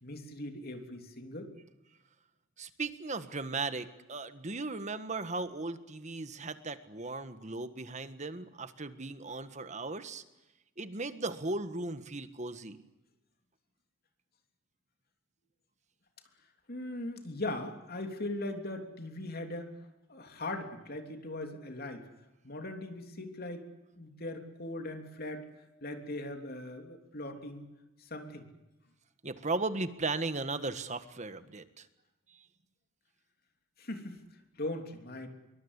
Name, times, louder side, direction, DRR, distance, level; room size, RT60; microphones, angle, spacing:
voice 1, 0.0-1.5 16.7-19.7 20.1-22.1 22.4-23.7 24.0-25.4 25.8-27.7 28.0-28.4 33.8-34.2 34.6-35.3, left 1 dB, 50° left, 5 dB, 3.2 m, -39 dB
voice 2, 2.6-10.2 10.8-12.8 29.2-31.9, right 3 dB, 35° right, 11 dB, 1.5 m, -37 dB
26.5 x 23.0 x 8.3 m, 1.0 s
head